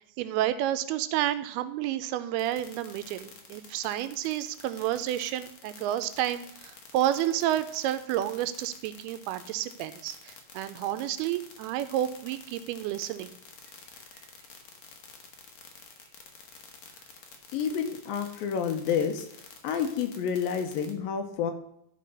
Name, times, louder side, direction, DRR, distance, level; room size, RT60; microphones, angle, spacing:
voice 1, 0.2-13.4, right 12 dB, 85° right, 11 dB, 2.5 m, -30 dB
sound 1, 2.4-20.9, left 6 dB, 55° left, 2.1 m, -49 dB
voice 2, 17.5-19.3 19.6-21.5, left 7 dB, 75° left, 6 dB, 2.4 m, -29 dB
13.0 x 4.5 x 5.3 m, 0.75 s
omnidirectional pair, 4.6 m